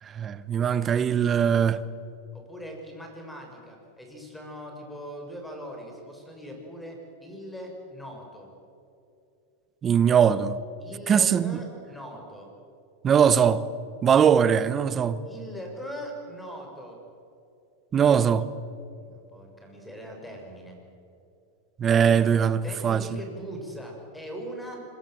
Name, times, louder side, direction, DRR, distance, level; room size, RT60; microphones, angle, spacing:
voice 1, 0.1-1.8 9.8-10.6 11.1-11.6 13.0-13.6 14.0-15.2 17.9-18.4 21.8-23.0, right 8 dB, 25° right, 1.1 m, -21 dB
voice 2, 2.3-8.5 10.8-12.5 15.2-17.0 18.9-20.8 21.9-22.3 22.6-24.8, equal, 5° left, 6.2 m, -40 dB
25.5 x 23.5 x 7.7 m
supercardioid pair, 140°, 0 cm